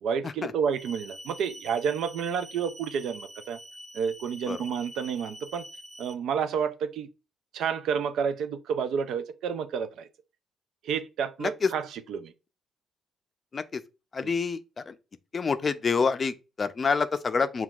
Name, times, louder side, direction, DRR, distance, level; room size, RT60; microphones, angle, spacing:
voice 1, 0.0-3.6 3.9-5.6 6.0-7.1 7.5-10.1 10.8-12.3, right 7 dB, 80° right, 0.4 m, -30 dB
sound 1, 0.7-6.1, equal, 15° right, 0.6 m, -46 dB
voice 2, 11.4-11.7 13.5-13.8 14.1-14.9 15.3-17.6, left 5 dB, 35° left, 0.4 m, -27 dB
5.7 x 2.3 x 2.3 m
cardioid pair, 90°, 0 cm